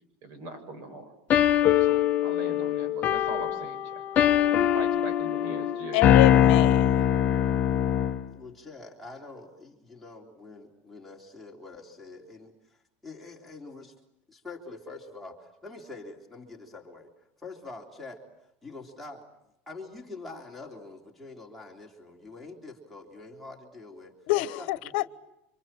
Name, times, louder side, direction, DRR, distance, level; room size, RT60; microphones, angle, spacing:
voice 1, 0.2-1.1 1.8-4.0 4.7-6.0, right 2 dB, 50° right, 6.9 m, -40 dB
sound 1, 1.3-8.3, left 10 dB, 30° left, 1.0 m, -22 dB
voice 2, 5.9-6.9 24.3-25.2, left 18 dB, 70° left, 1.1 m, -27 dB
voice 3, 8.3-13.9 14.3-17.1 17.4-18.2 18.6-19.3 19.7-24.1 24.6-24.9, left 3 dB, ahead, 3.5 m, -45 dB
29.5 x 26.5 x 7.6 m
cardioid pair, 170°, 6 cm